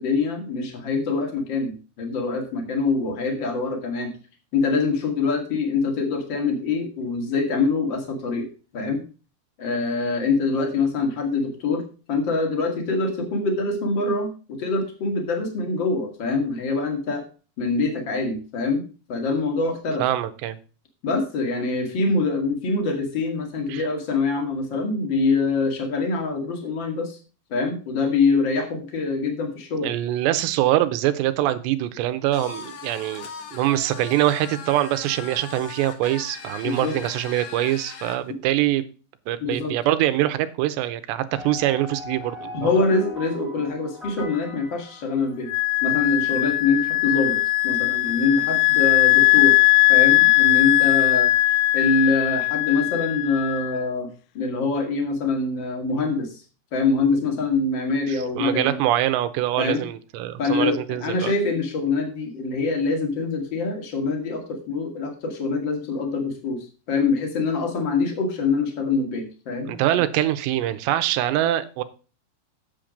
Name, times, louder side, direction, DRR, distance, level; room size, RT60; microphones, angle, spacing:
voice 1, 0.0-4.1 4.5-8.5 8.7-9.0 9.6-11.8 12.1-17.2 17.6-18.8 19.1-20.0 21.0-27.2 27.5-29.9 36.6-37.0 38.3-38.4 39.4-39.8 42.5-45.5 45.8-47.4 47.6-49.5 49.9-51.3 51.7-54.1 54.3-56.4 56.7-58.8 59.6-59.8 60.4-69.7, left 3 dB, 40° left, 4 dB, 1.9 m, -24 dB
voice 2, 20.0-20.6 23.7-23.8 29.8-38.8 39.3-42.7 58.1-61.3 69.7-71.8, right 13 dB, 80° right, 11 dB, 2.9 m, -24 dB
sound 1, 32.3-38.2, left 6 dB, 65° left, 2.0 m, -39 dB
sound 2, 41.4-45.7, left 3 dB, ahead, 0.6 m, -39 dB
Wind instrument woodwind instrument, 45.5-53.8, left 20 dB, 90° left, 2.9 m, -19 dB
8.4 x 7.5 x 5.0 m, 0.35 s
omnidirectional pair, 5.0 m